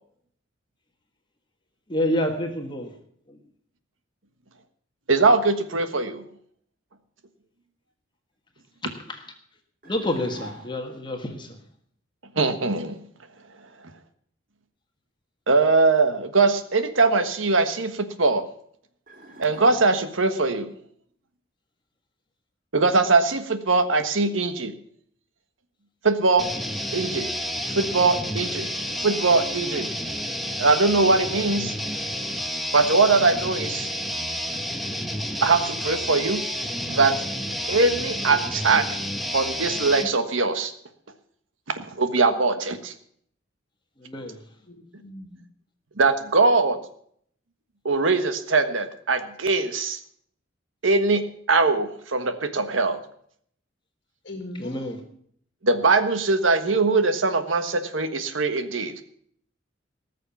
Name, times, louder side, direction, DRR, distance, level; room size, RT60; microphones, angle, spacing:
voice 1, 1.9-2.9 3.3-3.4 9.1-9.2 9.8-11.6 44.0-44.4 54.5-55.0, left 1 dB, 25° left, 4 dB, 1.5 m, -28 dB
voice 2, 5.1-6.2 12.3-13.0 15.5-18.5 19.4-20.7 22.7-24.7 26.0-26.5 26.9-27.3 27.7-28.7 29.0-29.9 30.6-31.7 32.7-33.9 35.4-36.4 36.9-37.2 37.7-38.9 39.3-40.7 41.8-42.9 46.0-46.8 47.8-50.0 50.8-51.2 51.5-53.0 55.6-59.0, right 3 dB, 85° right, 9 dB, 1.4 m, -21 dB
sound 1, 9.8-11.0 19.1-20.4, right 1 dB, 45° right, 3.0 m, -43 dB
sound 2, 26.4-40.1, equal, ahead, 1.2 m, -30 dB
voice 3, 44.7-45.4 54.2-55.1, left 1 dB, 55° left, 5 dB, 1.9 m, -39 dB
19.0 x 6.8 x 7.1 m, 0.64 s
head